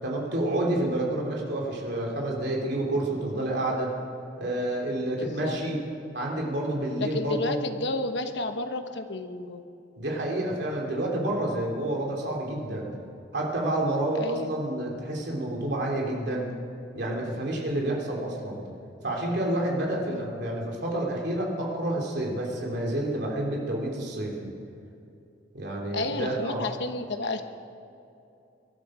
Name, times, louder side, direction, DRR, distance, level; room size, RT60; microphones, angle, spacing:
voice 1, 0.0-3.9 4.4-5.8 6.1-7.6 10.0-12.9 13.3-16.5 16.9-18.6 19.0-24.5 25.5-26.6, right 1 dB, 60° right, -2 dB, 3.2 m, -29 dB
voice 2, 5.2-5.6 7.0-9.6 14.2-14.5 20.0-20.2 25.9-27.4, left 2 dB, 65° left, 7 dB, 1.2 m, -31 dB
23.0 x 12.5 x 5.0 m, 2.7 s
head